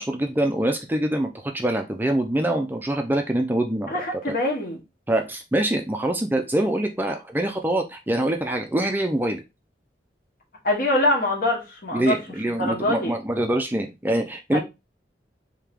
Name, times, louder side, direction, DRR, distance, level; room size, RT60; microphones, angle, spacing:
voice 1, 0.0-3.9 4.3-4.4 5.1-9.4 11.9-14.6, right 1 dB, 10° right, 0.4 m, -24 dB
voice 2, 3.9-4.8 10.6-12.2 12.6-13.2 14.5-14.6, left 1 dB, 55° left, 1.2 m, -24 dB
3.4 x 2.8 x 3.4 m
head